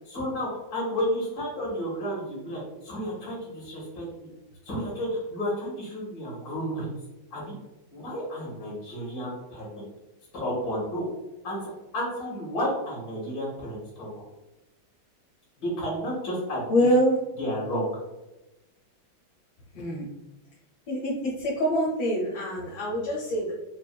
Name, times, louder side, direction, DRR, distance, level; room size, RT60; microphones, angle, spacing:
voice 1, 0.1-4.3 4.7-6.9 7.3-7.5 7.9-9.9 10.3-11.0 11.4-11.6 11.9-14.2 15.6-16.8 17.4-17.9, equal, 50° left, -5 dB, 2.0 m, -32 dB
voice 2, 16.7-17.2 19.7-20.1 20.9-23.5, equal, 70° left, -4 dB, 1.5 m, -25 dB
5.4 x 2.5 x 2.2 m, 1.0 s
omnidirectional pair, 2.1 m